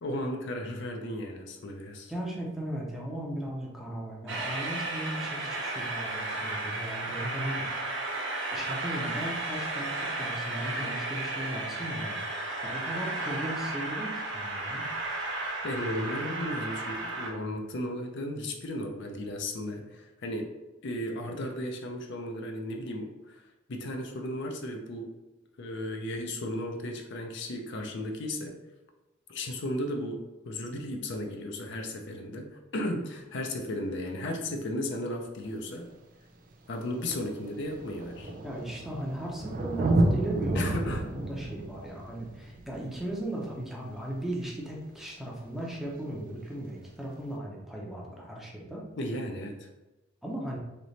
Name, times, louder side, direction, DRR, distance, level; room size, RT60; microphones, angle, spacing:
voice 1, 0.0-2.1 15.6-20.5 20.8-23.4 23.7-25.1 25.6-28.5 29.3-35.9 36.7-38.3 40.5-41.0 49.0-49.7, left 1 dB, 65° left, 3 dB, 0.6 m, -35 dB
voice 2, 2.1-7.7 8.5-14.9 38.4-40.6 40.9-48.8 50.2-50.6, right 1 dB, ahead, -3 dB, 0.7 m, -37 dB
Train, 4.3-17.3, right 2 dB, 65° right, 0.8 m, -34 dB
Thunder, 35.5-35.6 36.5-36.6 36.8-44.1 45.8-45.9, right 2 dB, 45° right, 0.5 m, -31 dB
3.3 x 2.9 x 4.0 m, 1.0 s
head